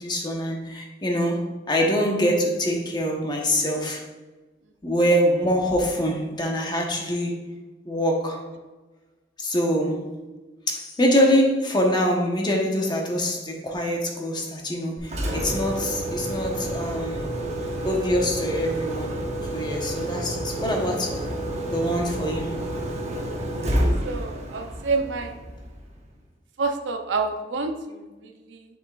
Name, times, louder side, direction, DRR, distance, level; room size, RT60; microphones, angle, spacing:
voice 1, 0.0-1.4 1.7-4.0 4.8-7.4 7.8-8.4 9.4-10.0 10.7-17.2 17.8-19.1 19.5-21.2 21.7-22.6, equal, 25° left, 0 dB, 1.1 m, -24 dB
Engine, 15.0-25.9, right 1 dB, 40° right, 1.0 m, -29 dB
voice 2, 23.6-25.4 26.6-28.7, right 3 dB, 85° right, 6 dB, 0.6 m, -29 dB
7.2 x 5.9 x 2.4 m, 1.2 s
head